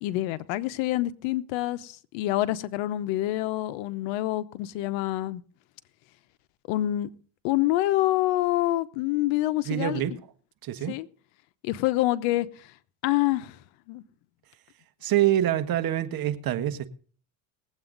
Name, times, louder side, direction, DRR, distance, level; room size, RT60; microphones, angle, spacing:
voice 1, 0.0-5.4 6.7-7.1 7.4-10.0 10.9-11.1 11.6-12.7 13.0-13.6 13.9-14.0, left 15 dB, 80° left, 1.0 m, -26 dB
voice 2, 9.6-10.1 10.6-10.9 15.0-16.9, right 12 dB, 50° right, 1.3 m, -25 dB
20.0 x 8.1 x 3.9 m
cardioid pair, 110°, 45 cm